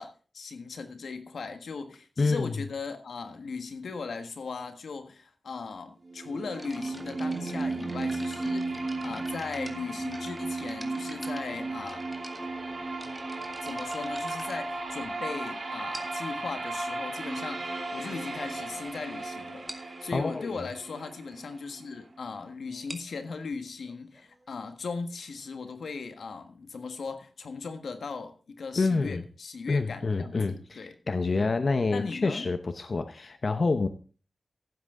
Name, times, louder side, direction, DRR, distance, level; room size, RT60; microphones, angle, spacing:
voice 1, 0.0-12.1 13.6-30.9 31.9-32.5, left 4 dB, 90° left, 8 dB, 1.5 m, -38 dB
voice 2, 2.2-2.6 20.1-20.5 28.8-29.2 29.7-33.9, left 3 dB, 55° left, 9 dB, 0.9 m, -27 dB
sound 1, 6.0-22.0, right 2 dB, 55° right, 2.9 m, -35 dB
sound 2, 6.5-15.3 15.9-16.4 17.2-17.3 17.9-18.0 18.3-18.5 18.8-18.9 19.2-19.3 19.7-20.0 22.7-26.1, right 1 dB, 10° right, 2.1 m, -48 dB
15.5 x 7.8 x 3.7 m, 0.38 s
wide cardioid pair, 65°, 0 cm